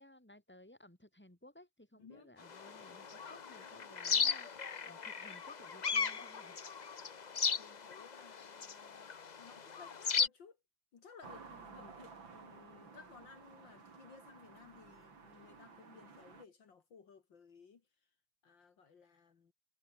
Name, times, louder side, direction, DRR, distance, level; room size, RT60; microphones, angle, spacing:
voice 1, 0.0-6.6 11.4-11.8, left 1 dB, 5° left, 4.5 m, -59 dB
voice 2, 2.0-2.3 7.6-9.1 9.4-10.6 10.9-11.5 11.7-17.8 18.4-19.5, left 5 dB, 65° left, 2.8 m, -58 dB
sound 1, 2.4-10.3, left 6 dB, 85° left, 0.3 m, -37 dB
sound 2, 11.2-16.4, right 5 dB, 70° right, 3.9 m, -55 dB
omnidirectional pair, 2.2 m